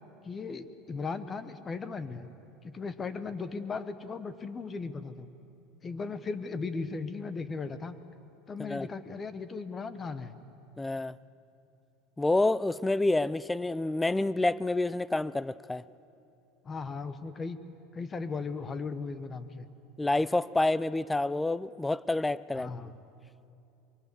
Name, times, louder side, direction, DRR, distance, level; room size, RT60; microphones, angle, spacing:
voice 1, 0.2-2.3 2.6-5.3 5.8-7.9 8.5-10.3 16.6-17.6 17.9-19.6 22.5-23.0, left 4 dB, 25° left, 1.2 m, -37 dB
voice 2, 10.8-11.1 12.2-15.8 20.0-22.7, left 2 dB, 10° left, 0.4 m, -28 dB
24.0 x 23.5 x 7.0 m
supercardioid pair, 120°, 0 cm